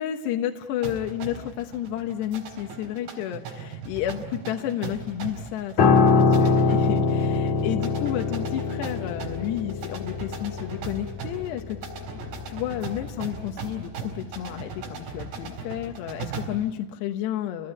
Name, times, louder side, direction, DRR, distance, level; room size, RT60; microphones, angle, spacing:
voice 1, 0.0-12.2 12.5-17.7, left 11 dB, 80° left, 4 dB, 3.3 m, -31 dB
sound 1, 0.8-16.7, right 5 dB, 75° right, 6.1 m, -39 dB
Piano, 5.8-15.2 15.4-15.7, left 4 dB, 55° left, 2.4 m, -24 dB
30.0 x 18.5 x 10.0 m, 1.1 s
omnidirectional pair, 4.9 m